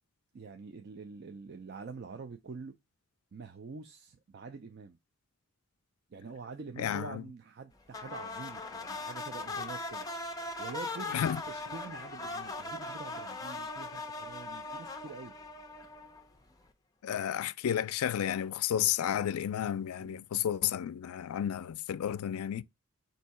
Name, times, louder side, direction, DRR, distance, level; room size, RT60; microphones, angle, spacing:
voice 1, 0.3-2.8 3.3-5.0 6.1-10.1 10.6-11.2 11.5-15.4 20.0-20.2, right 4 dB, 45° right, 0.4 m, -46 dB
voice 2, 6.8-7.2 11.1-11.4 17.0-22.6, left 10 dB, 80° left, 0.3 m, -32 dB
sound 1, 7.9-16.4, left 3 dB, 15° left, 0.5 m, -40 dB
4.5 x 2.7 x 4.1 m
head